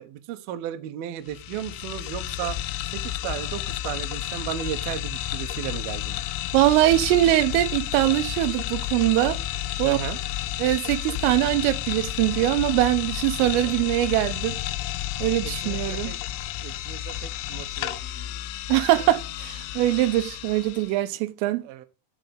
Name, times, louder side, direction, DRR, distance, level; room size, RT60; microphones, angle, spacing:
voice 1, 0.0-2.6 2.9-6.2 9.8-10.2 13.6-13.9 15.4-16.2 16.6-18.4 21.6-21.9, right 11 dB, 70° right, 2.4 m, -35 dB
sound 1, 1.3-21.0, left 13 dB, 80° left, 3.0 m, -31 dB
voice 2, 6.5-9.4 9.8-10.0 10.6-14.6 15.2-16.1 18.7-21.6, right 15 dB, 90° right, 3.5 m, -22 dB
9.7 x 7.1 x 8.0 m
omnidirectional pair, 5.7 m